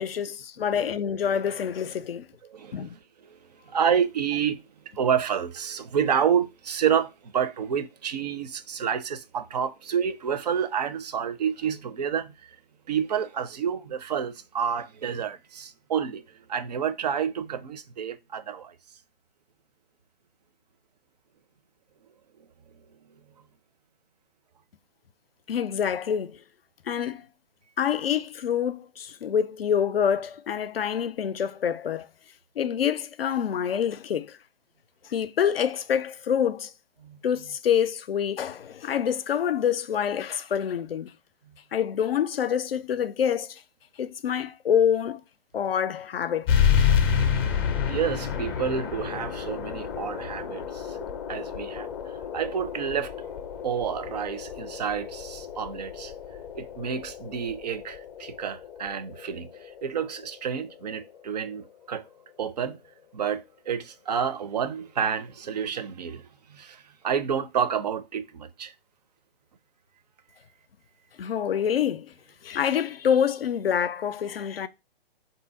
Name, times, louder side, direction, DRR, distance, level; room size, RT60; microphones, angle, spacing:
voice 1, 0.0-2.3 2.7-2.9 25.5-26.4 26.9-27.2 27.8-32.1 32.6-34.4 35.0-36.7 37.2-41.1 41.7-43.6 44.0-45.2 45.5-46.5 71.2-72.1 72.4-74.7, left 8 dB, 75° left, 0.5 m, -26 dB
voice 2, 2.5-3.4 3.7-12.6 12.9-18.8 37.0-37.2 41.5-41.6 47.9-51.0 51.3-51.9 52.3-53.1 53.6-56.1 56.5-62.0 62.4-62.8 63.1-68.7, right 7 dB, 45° right, 0.4 m, -29 dB
sound 1, 46.5-61.6, left 7 dB, 25° left, 0.5 m, -29 dB
3.7 x 2.7 x 4.0 m
figure-of-eight pair, 130°, 30 cm